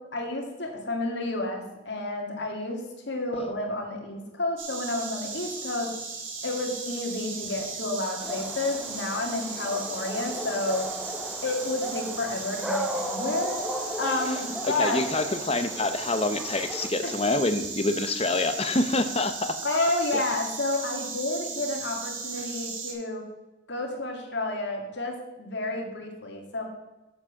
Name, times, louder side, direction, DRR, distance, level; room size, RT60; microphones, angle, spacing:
voice 1, 0.0-2.8 3.1-5.9 6.4-10.8 11.4-13.6 14.0-15.0 17.0-17.1 19.6-23.2 23.7-26.7, left 2 dB, 65° left, 2 dB, 2.1 m, -30 dB
Insect, 4.6-22.9, right 4 dB, 90° right, 2.4 m, -37 dB
Dog, 8.2-16.9, equal, 5° right, 0.8 m, -36 dB
voice 2, 14.6-19.6 20.1-20.2, left 2 dB, 30° left, 9 dB, 0.7 m, -26 dB
7.5 x 7.2 x 7.1 m, 1.1 s
head